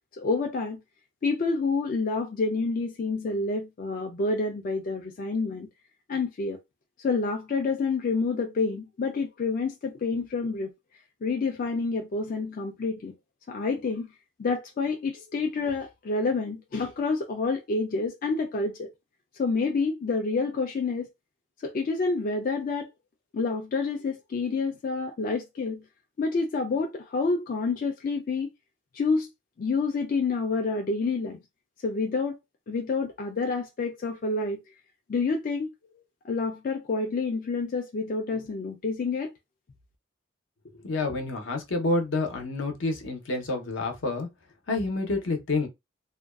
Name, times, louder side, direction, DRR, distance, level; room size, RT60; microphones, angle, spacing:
voice 1, 0.1-0.8 1.2-5.7 6.1-6.6 7.0-10.7 11.2-13.1 13.5-14.1 14.4-18.9 19.4-21.1 21.6-22.9 23.3-25.8 26.2-28.5 28.9-29.3 29.6-31.4 31.8-32.4 32.7-34.6 35.1-35.7 36.2-39.3, left 4 dB, 45° left, 0.3 m, -28 dB
voice 2, 40.7-44.3 44.7-45.7, left 2 dB, 70° left, 0.7 m, -28 dB
2.5 x 2.2 x 2.2 m
head